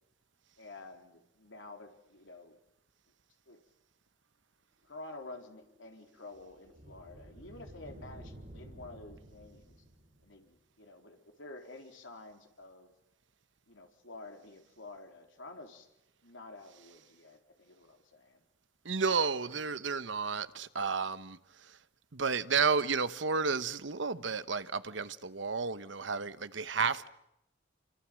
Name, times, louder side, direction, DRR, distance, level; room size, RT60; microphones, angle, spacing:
voice 1, 0.6-2.6 3.5-3.6 4.8-9.8 10.2-12.9 13.7-15.9 16.2-18.4, left 2 dB, 90° left, 3.9 m, -50 dB
sound 1, 5.4-10.5, right 1 dB, 50° right, 7.8 m, -53 dB
voice 2, 18.8-21.8 22.1-27.1, right 5 dB, 80° right, 1.1 m, -32 dB
29.0 x 25.0 x 7.7 m
head